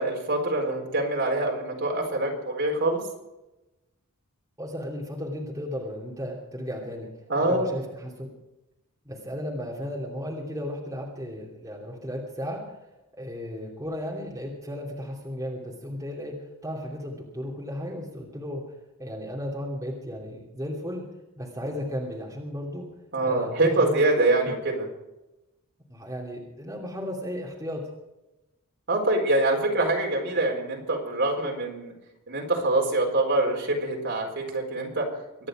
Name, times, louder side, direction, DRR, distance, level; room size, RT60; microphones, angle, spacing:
voice 1, 0.0-3.0 7.3-7.8 23.1-24.9 28.9-31.9 32.3-35.1, right 2 dB, 55° right, 0 dB, 4.4 m, -25 dB
voice 2, 4.6-7.1 7.4-8.3 9.0-12.8 13.2-16.4 16.6-18.6 19.0-21.0 21.4-22.9 23.2-24.0 25.9-27.8, equal, 15° right, -3 dB, 2.8 m, -35 dB
24.0 x 10.5 x 5.0 m, 0.97 s
head